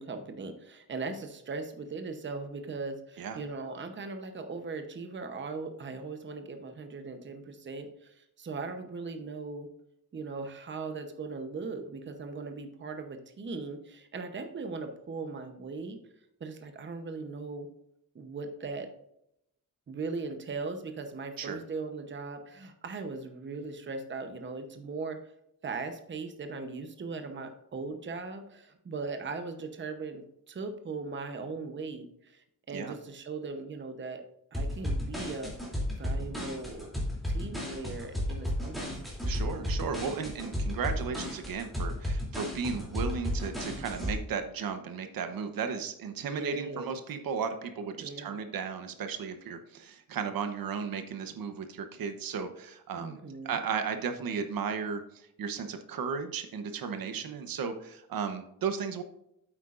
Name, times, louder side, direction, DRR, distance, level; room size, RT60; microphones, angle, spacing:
voice 1, 0.0-9.7 10.1-16.0 16.4-17.7 18.1-18.9 19.9-25.2 25.6-34.2 34.5-36.9 37.3-39.0 46.2-46.9 48.0-48.4 52.9-53.6, right 4 dB, 35° right, 7 dB, 0.9 m, -39 dB
sound 1, 34.5-44.1, equal, ahead, 2.9 m, -33 dB
voice 2, 39.2-53.2 53.4-59.0, right 6 dB, 80° right, 8 dB, 1.1 m, -35 dB
8.9 x 8.5 x 2.5 m, 0.79 s
wide cardioid pair, 160°, 35 cm